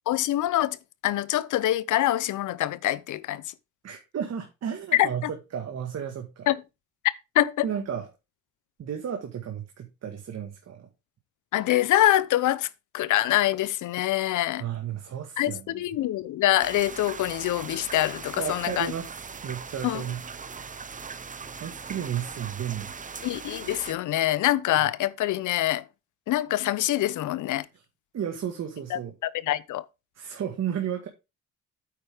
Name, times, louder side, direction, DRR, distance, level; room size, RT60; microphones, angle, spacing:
voice 1, 0.1-0.8 1.0-3.4 4.9-5.3 6.5-6.6 7.3-7.7 11.5-12.7 12.9-14.6 15.4-18.9 19.8-20.0 23.2-25.8 26.3-27.6 28.9-29.8, left 14 dB, 80° left, 0.8 m, -25 dB
voice 2, 3.8-6.5 7.6-8.1 8.8-10.9 14.6-15.8 18.4-19.1 19.4-20.2 21.6-22.9 27.7-27.8 28.1-29.1 30.2-31.1, right 9 dB, 60° right, 1.8 m, -33 dB
sound 1, 16.6-23.9, right 5 dB, 25° right, 0.8 m, -40 dB
9.0 x 8.4 x 3.6 m
cardioid pair, 90°, 30 cm